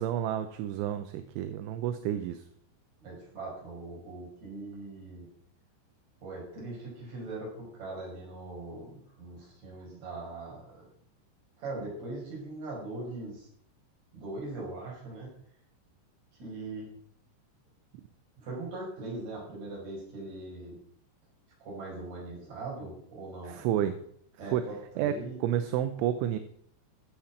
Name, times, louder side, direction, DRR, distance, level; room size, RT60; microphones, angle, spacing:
voice 1, 0.0-2.4 23.5-23.9 24.5-24.6 25.0-25.2 25.4-26.4, right 11 dB, 80° right, 9 dB, 3.0 m, -30 dB
voice 2, 3.0-5.3 6.2-10.8 11.6-13.5 14.1-15.3 16.4-16.9 18.4-20.8 21.6-23.7 24.4-25.4, right 2 dB, 35° right, -3 dB, 6.3 m, -40 dB
15.0 x 7.5 x 5.9 m, 0.67 s
omnidirectional pair, 5.7 m